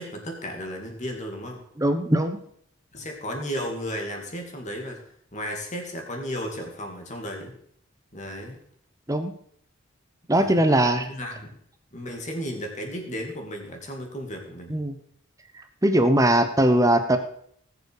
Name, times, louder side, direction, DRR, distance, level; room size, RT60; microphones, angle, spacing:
voice 1, 0.0-1.6 2.9-5.0 5.3-7.6 8.1-8.6 10.3-10.6 11.0-11.6 11.9-14.8, equal, 35° left, 2 dB, 2.6 m, -34 dB
voice 2, 1.8-2.4 9.1-9.3 10.3-11.1 14.7-15.0 15.5-17.2, right 1 dB, 15° right, 8 dB, 1.0 m, -20 dB
19.5 x 7.1 x 4.9 m, 0.65 s
head